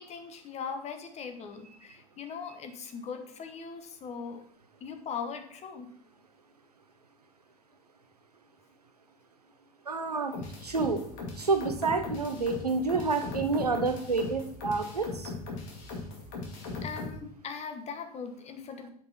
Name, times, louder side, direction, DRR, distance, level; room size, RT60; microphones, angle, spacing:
voice 1, 0.0-4.4 4.8-5.9 16.8-18.9, left 6 dB, 35° left, 7 dB, 1.3 m, -40 dB
voice 2, 9.9-11.0 11.4-15.3, right 4 dB, 90° right, 7 dB, 0.8 m, -29 dB
sound 1, 10.3-17.2, left 3 dB, 60° left, 2.2 m, -39 dB
7.6 x 5.7 x 4.1 m, 0.65 s
figure-of-eight pair, 75°, 19 cm